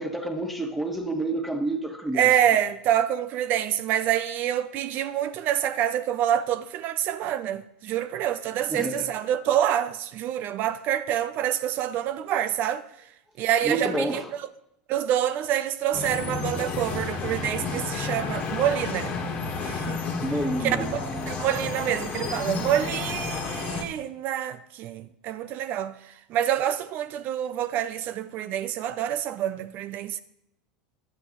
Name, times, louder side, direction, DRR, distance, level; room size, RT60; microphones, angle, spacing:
voice 1, 0.0-2.3 8.7-9.1 13.6-14.3 20.2-20.9, right 1 dB, ahead, 1.5 m, -29 dB
voice 2, 2.1-12.8 13.4-14.2 14.9-19.2 19.6-20.0 20.6-20.8 21.3-30.2, right 11 dB, 50° right, 0.5 m, -27 dB
sound 1, 15.9-23.8, left 4 dB, 40° left, 1.5 m, -31 dB
11.0 x 8.1 x 3.9 m
hypercardioid pair, 90°, 4 cm